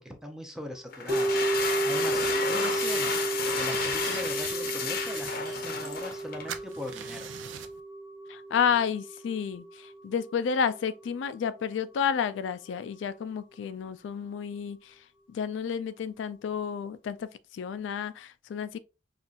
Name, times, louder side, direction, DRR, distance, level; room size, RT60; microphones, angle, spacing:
voice 1, 0.0-7.3, left 1 dB, 5° right, 0.5 m, -41 dB
sound 1, 0.9-6.5, left 5 dB, 50° left, 0.7 m, -31 dB
sound 2, 1.1-11.4 11.6-11.7, right 2 dB, 30° right, 1.1 m, -33 dB
sound 3, 2.2-3.2 3.6-6.2 6.5-7.8, right 7 dB, 85° right, 0.4 m, -43 dB
voice 2, 8.3-18.8, left 7 dB, 75° left, 0.3 m, -31 dB
5.2 x 2.4 x 2.4 m
head